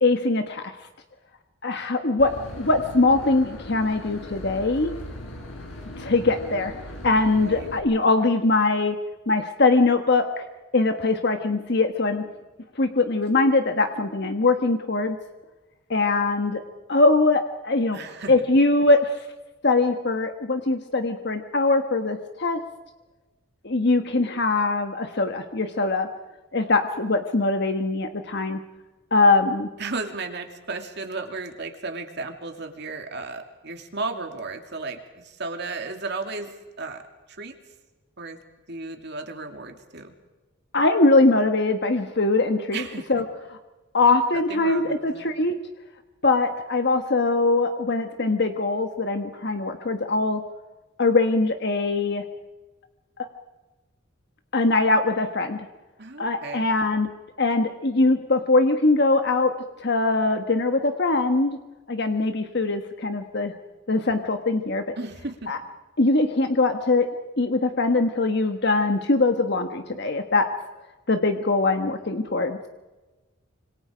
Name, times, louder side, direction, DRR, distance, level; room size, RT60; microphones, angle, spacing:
voice 1, 0.0-0.7 1.6-4.9 6.0-6.7 7.0-9.0 9.3-10.5 10.7-12.2 12.8-15.2 15.9-16.6 16.9-18.0 18.3-19.1 19.6-22.6 23.6-26.1 26.5-28.6 29.1-29.7 40.7-42.8 43.1-43.2 43.9-45.5 46.2-50.4 51.0-52.2 53.2-53.3 54.5-55.6 56.2-57.1 57.4-59.5 59.8-61.6 61.9-63.5 63.9-64.8 65.5-65.6 66.0-67.1 67.4-70.5 71.1-72.6, left 3 dB, 55° left, 6 dB, 1.3 m, -22 dB
Boat Water vehicle / Engine, 2.2-7.8, left 1 dB, 70° left, 5.9 m, -39 dB
voice 2, 17.9-18.3 29.8-37.0 37.3-37.5 38.2-38.4 38.7-40.1 42.7-43.0 44.5-45.3 56.0-56.7 65.0-65.5, right 3 dB, 55° right, 5 dB, 2.7 m, -34 dB
26.5 x 25.5 x 5.1 m, 1.1 s
head